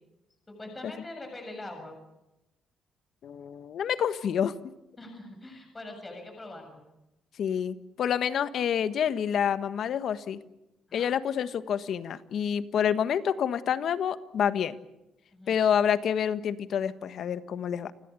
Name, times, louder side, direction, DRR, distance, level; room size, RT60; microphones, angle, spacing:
voice 1, 0.5-1.9 5.0-6.8 10.9-11.1 15.3-15.6, left 2 dB, 20° left, 4 dB, 7.5 m, -43 dB
voice 2, 3.2-4.5 7.4-10.4 10.9-14.8 15.5-17.9, left 8 dB, 65° left, 12 dB, 1.4 m, -28 dB
29.5 x 17.0 x 8.4 m, 0.93 s
cardioid pair, 80°, 0 cm